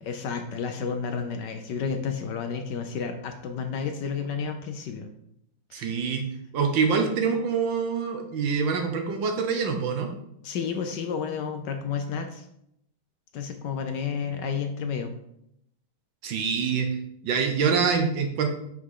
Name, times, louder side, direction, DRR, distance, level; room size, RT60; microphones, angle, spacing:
voice 1, 0.0-5.1 5.7-6.0 10.4-12.4 13.3-15.1, left 6 dB, 70° left, 6 dB, 1.2 m, -31 dB
voice 2, 5.7-6.2 6.5-10.1 16.2-16.9 17.2-18.6, right 5 dB, 70° right, 5 dB, 1.6 m, -25 dB
5.8 x 5.6 x 4.8 m, 0.77 s
omnidirectional pair, 2.2 m